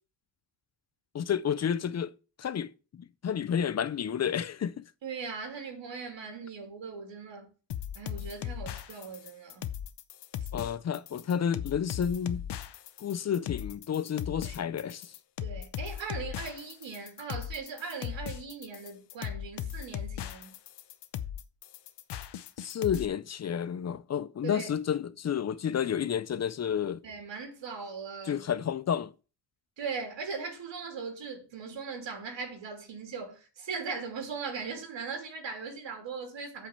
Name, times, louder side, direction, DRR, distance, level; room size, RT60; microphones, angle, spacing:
voice 1, 1.1-2.1 2.4-4.8 10.5-12.4 13.0-15.1 22.6-27.0 28.3-29.1, left 8 dB, 40° left, 0.4 m, -31 dB
voice 2, 5.0-7.5 7.9-9.6 14.4-14.6 15.4-20.5 24.4-24.7 27.0-28.4 29.8-36.7, right 5 dB, 90° right, 3.0 m, -39 dB
sound 1, 7.7-23.1, left 10 dB, 70° left, 0.8 m, -38 dB
8.1 x 5.3 x 7.2 m
wide cardioid pair, 155°, 43 cm